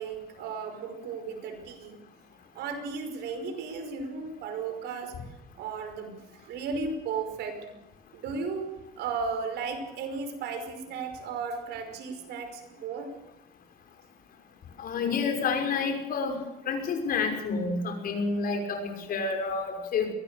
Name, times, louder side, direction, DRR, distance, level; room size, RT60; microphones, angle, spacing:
voice 1, 0.0-2.0 2.5-5.1 5.5-7.6 8.1-13.1, right 5 dB, 80° right, 6 dB, 5.4 m, -35 dB
voice 2, 14.8-16.3 16.7-20.1, left 4 dB, 60° left, 5 dB, 5.9 m, -29 dB
23.0 x 18.5 x 6.9 m, 0.95 s
cardioid pair, 110°, 17 cm